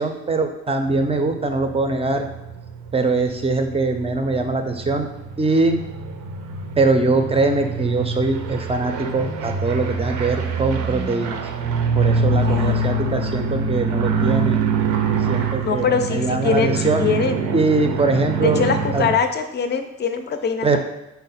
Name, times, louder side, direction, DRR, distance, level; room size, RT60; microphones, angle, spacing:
voice 1, 0.0-2.2 2.9-5.1 5.4-5.8 6.8-11.4 11.9-14.6 15.3-17.0 17.5-18.6 18.9-19.1 20.6-20.8, right 3 dB, 20° right, 6 dB, 0.4 m, -22 dB
sound 1, 0.9-19.1, right 4 dB, 80° right, 0.6 m, -25 dB
voice 2, 12.2-12.8 15.6-17.5 18.4-20.8, left 5 dB, 35° left, 7 dB, 0.5 m, -23 dB
4.4 x 2.1 x 4.1 m, 0.98 s
cardioid pair, 90°, 30 cm